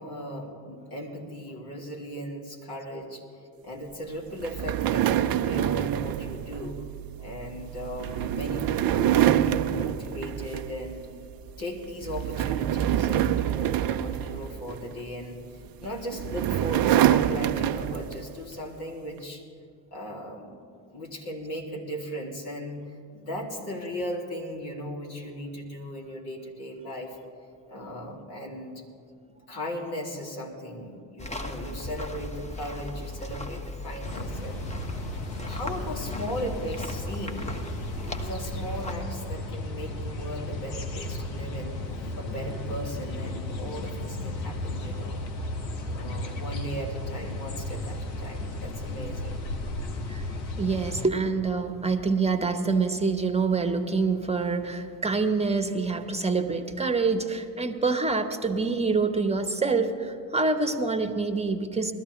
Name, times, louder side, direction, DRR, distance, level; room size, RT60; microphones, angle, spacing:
voice 1, 0.0-6.8 7.2-11.1 11.6-19.4 19.9-22.8 23.1-27.2 27.7-28.8 29.3-34.7 35.4-37.5 37.9-41.8 42.2-45.2 45.8-49.4, equal, 50° left, -1 dB, 3.3 m, -37 dB
sound 1, 4.4-11.0 11.3-11.6 12.0-15.0 15.8-18.3, right 11 dB, 45° right, 0.7 m, -26 dB
sound 2, 31.2-38.9, left 1 dB, 15° left, 1.6 m, -38 dB
sound 3, 34.0-51.1, left 1 dB, 85° left, 1.2 m, -34 dB
voice 2, 50.6-61.9, right 4 dB, 15° right, 8 dB, 1.4 m, -26 dB
21.0 x 13.5 x 3.4 m, 2.4 s
hypercardioid pair, 60°, 49 cm